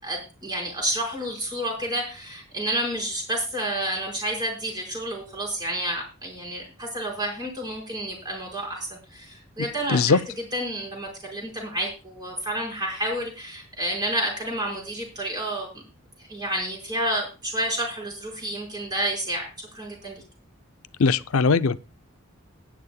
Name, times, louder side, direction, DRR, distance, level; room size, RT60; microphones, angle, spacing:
voice 1, 0.0-10.2 10.5-15.7 16.2-20.2, right 1 dB, 20° right, 5.0 m, -30 dB
voice 2, 9.9-10.2 21.0-21.8, left 4 dB, 80° left, 0.6 m, -19 dB
19.0 x 10.0 x 2.3 m
head